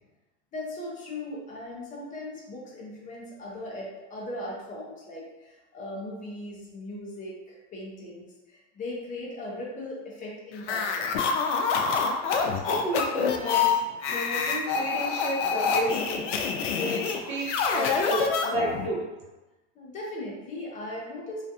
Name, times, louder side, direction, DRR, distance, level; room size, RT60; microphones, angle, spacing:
voice 1, 0.5-11.1 19.7-21.5, left 1 dB, 20° left, -4 dB, 0.5 m, -38 dB
sound 1, 10.6-18.9, left 5 dB, 80° left, 0.5 m, -26 dB
voice 2, 12.7-13.8 14.1-16.2 16.7-19.0, right 1 dB, 35° right, -6 dB, 0.9 m, -32 dB
2.4 x 2.3 x 2.6 m, 1.1 s
supercardioid pair, 140°, 35 cm